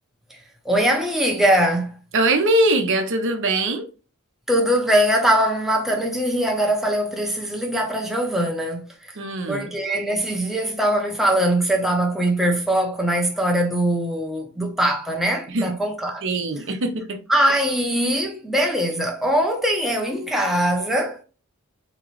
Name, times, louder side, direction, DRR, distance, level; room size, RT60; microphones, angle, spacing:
voice 1, 0.6-2.0 4.5-9.2 9.5-16.2 17.3-21.2, right 1 dB, ahead, 0.6 m, -21 dB
voice 2, 2.1-3.8 9.2-9.7 15.5-15.7 16.2-17.2, right 2 dB, 60° right, 0.7 m, -22 dB
3.7 x 2.9 x 3.0 m
head